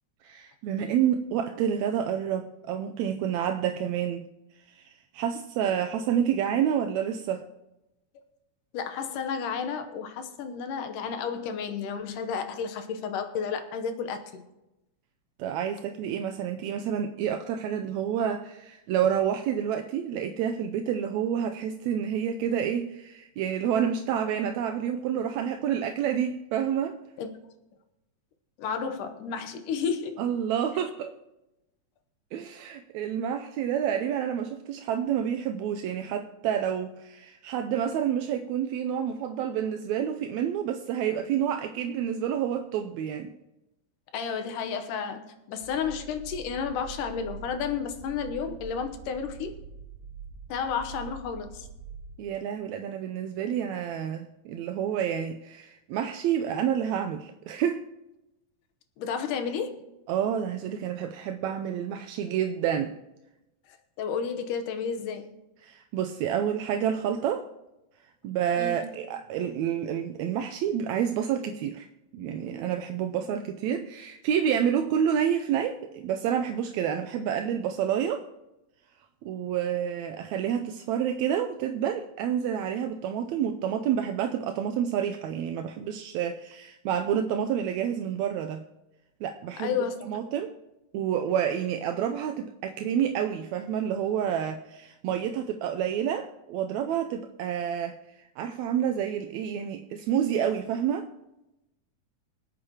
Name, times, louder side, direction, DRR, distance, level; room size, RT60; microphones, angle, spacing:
voice 1, 0.2-4.3 4.7-7.5 15.4-27.0 30.2-31.1 32.3-43.3 52.2-57.8 60.1-62.9 65.6-67.5 68.2-71.9 72.1-78.2 79.2-88.6 89.2-90.5 90.9-101.1, right 9 dB, 80° right, 5 dB, 1.7 m, -29 dB
voice 2, 8.7-14.4 27.2-27.3 28.6-30.2 44.1-45.2 45.5-49.5 50.5-51.7 59.0-59.8 63.7-65.3 68.6-68.8 89.6-90.1, left 6 dB, 85° left, 7 dB, 2.6 m, -32 dB
sound 1, 45.6-52.2, right 5 dB, 60° right, 1.8 m, -44 dB
25.0 x 8.3 x 2.9 m, 0.94 s
omnidirectional pair, 3.6 m